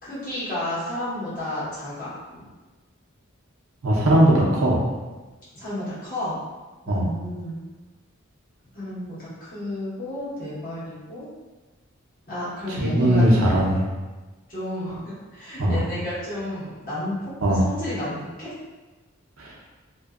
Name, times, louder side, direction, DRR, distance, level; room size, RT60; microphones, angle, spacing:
voice 1, 0.0-2.4 5.5-6.4 6.8-7.6 8.7-11.3 12.3-13.3 14.5-18.5, left 1 dB, 40° left, -11 dB, 1.2 m, -32 dB
voice 2, 3.8-4.8 6.9-7.1 12.7-13.8 14.9-15.0 15.6-15.8 17.4-17.7 19.4-19.5, right 1 dB, 85° right, -4 dB, 0.6 m, -19 dB
2.6 x 2.2 x 2.3 m, 1.2 s
head